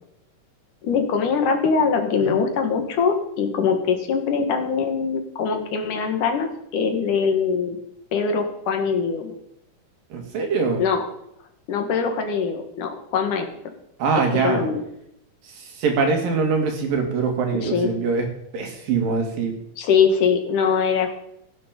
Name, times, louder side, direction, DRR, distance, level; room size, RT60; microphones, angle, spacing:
voice 1, 0.8-7.8 8.1-9.3 10.8-11.0 11.7-13.5 14.3-14.8 17.6-17.9 19.8-21.1, left 6 dB, 70° left, 5 dB, 3.2 m, -22 dB
voice 2, 10.1-10.8 14.0-14.6 15.4-18.3 18.5-19.5, right 4 dB, 80° right, 3 dB, 4.1 m, -23 dB
17.0 x 9.1 x 5.3 m, 0.77 s
omnidirectional pair, 3.9 m